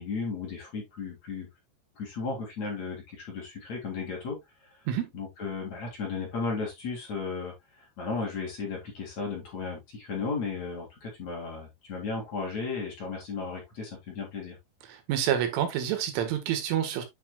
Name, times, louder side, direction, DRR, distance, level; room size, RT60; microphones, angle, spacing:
voice 1, 0.0-1.5 2.0-4.4 5.1-7.5 8.0-14.6, left 4 dB, 40° left, 4.0 m, -35 dB
voice 2, 14.9-17.1, right 10 dB, 85° right, 4.1 m, -28 dB
9.9 x 6.2 x 2.4 m
omnidirectional pair, 5.4 m